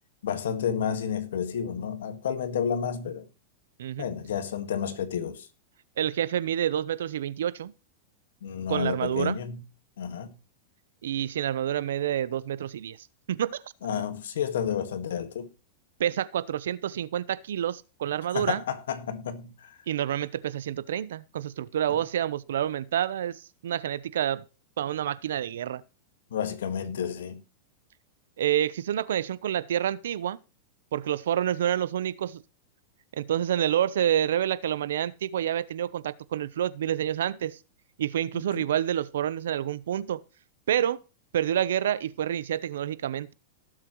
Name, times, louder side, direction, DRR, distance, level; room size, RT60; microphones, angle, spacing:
voice 1, 0.2-3.3 4.0-5.5 8.4-9.6 10.0-10.3 13.8-15.5 18.3-19.8 21.9-22.0 26.3-27.4 38.3-38.7, left 7 dB, 90° left, 1.7 m, -31 dB
voice 2, 6.0-7.7 8.7-9.4 11.0-13.0 13.3-13.6 16.0-18.6 19.9-24.4 24.8-25.8 28.4-30.4 30.9-32.4 33.1-37.6 38.0-40.2 40.7-41.0 41.3-43.3, right 10 dB, 85° right, 0.7 m, -28 dB
18.0 x 7.4 x 3.1 m
supercardioid pair, 145°, 0 cm